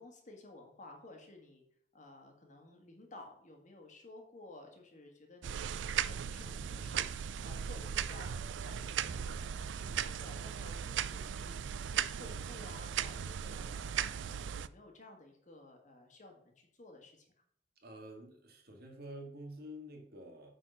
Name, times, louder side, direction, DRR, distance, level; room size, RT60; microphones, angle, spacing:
voice 1, 0.0-1.6 1.9-11.6 11.9-17.3, left 2 dB, 40° left, 2 dB, 1.7 m, -55 dB
sound 1, 5.4-14.7, right 8 dB, 80° right, 0.4 m, -37 dB
voice 2, 17.8-20.5, equal, 55° right, 1 dB, 2.0 m, -48 dB
8.9 x 4.3 x 5.7 m, 0.66 s
head